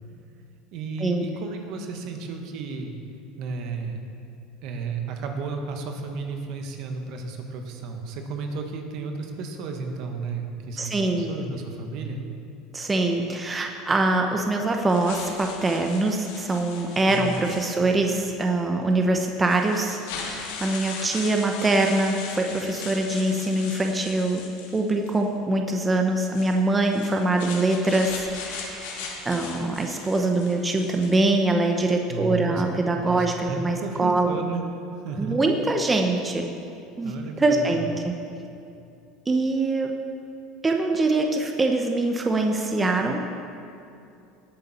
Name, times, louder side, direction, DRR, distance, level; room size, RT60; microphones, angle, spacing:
voice 1, 0.7-2.9 3.4-4.1 4.6-12.2 17.1-17.4 32.1-32.6 33.0-34.6 35.0-35.4 37.0-37.8, right 4 dB, 60° right, 4 dB, 1.6 m, -33 dB
voice 2, 10.8-11.3 12.7-24.4 24.7-34.4 35.2-36.5 37.0-38.1 39.3-39.9 40.6-43.2, right 2 dB, 15° right, 3 dB, 0.9 m, -24 dB
sound 1, 14.9-18.1 18.9-19.0 19.5-25.2 26.2-31.4, left 5 dB, 85° left, 2.3 m, -39 dB
18.0 x 8.3 x 4.4 m, 2.6 s
supercardioid pair, 115°, 0 cm